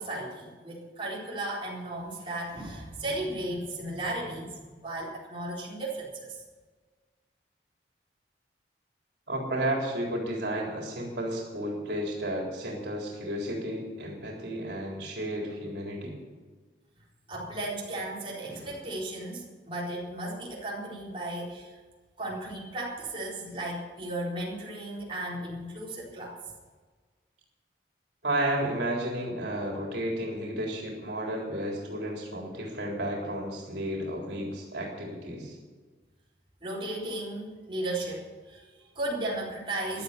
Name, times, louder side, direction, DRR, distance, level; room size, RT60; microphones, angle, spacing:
voice 1, 0.0-6.4 17.3-21.8 22.2-26.4 36.6-40.0, right 1 dB, 30° right, -5 dB, 4.2 m, -35 dB
voice 2, 9.3-16.2 28.2-35.6, right 1 dB, 70° right, -1 dB, 3.8 m, -32 dB
15.0 x 11.5 x 6.9 m, 1.4 s
head